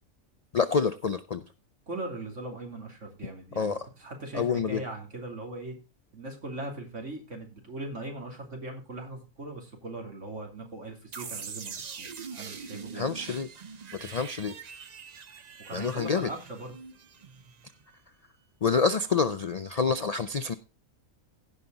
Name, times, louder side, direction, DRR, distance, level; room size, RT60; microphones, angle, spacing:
voice 1, 0.5-1.5 3.6-3.8 4.3-4.8 12.9-13.5 14.0-14.5 15.7-16.3 18.6-20.5, left 5 dB, 80° left, 12 dB, 0.3 m, -27 dB
voice 2, 1.9-5.7 6.1-12.1 12.4-13.3 15.6-16.7, right 2 dB, 60° right, 1 dB, 3.2 m, -39 dB
sound 1, 11.1-17.9, right 6 dB, 45° right, 0.6 m, -43 dB
16.5 x 5.8 x 3.9 m, 0.30 s
omnidirectional pair, 1.4 m